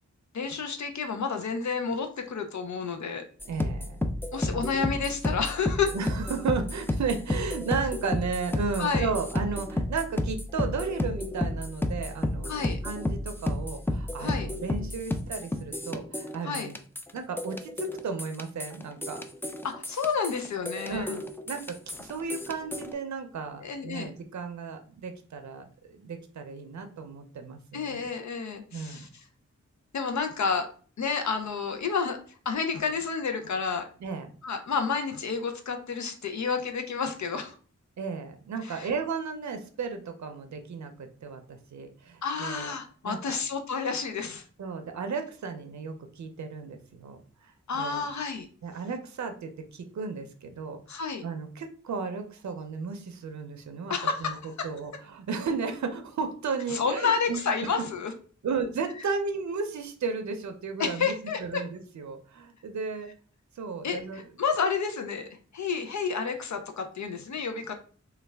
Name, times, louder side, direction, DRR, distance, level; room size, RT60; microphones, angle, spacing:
voice 1, 0.3-3.2 4.3-5.9 8.8-9.1 12.5-12.8 14.2-14.5 16.4-16.7 19.6-21.2 23.6-24.1 27.7-29.1 29.9-30.7 31.0-32.2 32.5-33.9 34.4-37.6 38.6-38.9 42.2-44.4 47.7-48.5 50.9-51.2 53.9-54.7 56.7-58.1 60.8-61.6 63.8-67.7, left 5 dB, 75° left, 6 dB, 0.5 m, -30 dB
sound 1, 3.4-22.9, left 1 dB, 10° left, 0.3 m, -32 dB
voice 2, 3.5-4.0 4.5-4.7 5.9-16.8 17.1-19.2 20.9-28.0 28.7-29.1 34.0-34.3 38.0-42.7 43.0-43.4 44.6-48.0 48.6-53.9 54.2-54.4 54.6-57.5 58.4-61.1 61.4-63.1 63.5-64.2, right 5 dB, 70° right, 6 dB, 0.5 m, -34 dB
3.1 x 2.3 x 3.3 m, 0.42 s
wide cardioid pair, 75°, 29 cm